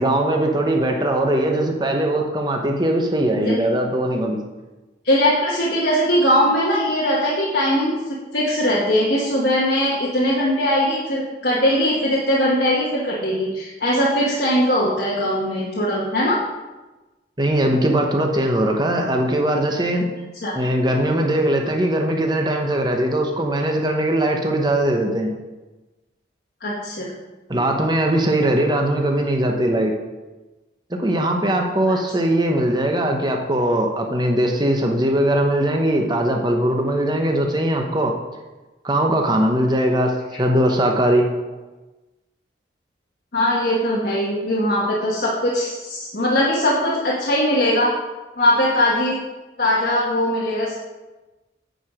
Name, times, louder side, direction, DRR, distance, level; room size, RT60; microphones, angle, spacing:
voice 1, 0.0-4.4 17.4-20.1 20.5-25.3 27.5-29.9 30.9-38.1 38.8-41.3, right 1 dB, 25° right, 2 dB, 0.9 m, -20 dB
voice 2, 5.0-16.4 20.4-20.5 26.6-27.1 31.9-32.0 43.3-47.9 48.4-49.1 49.6-50.8, equal, 60° left, -5 dB, 1.2 m, -20 dB
9.1 x 4.8 x 5.0 m, 1.1 s
head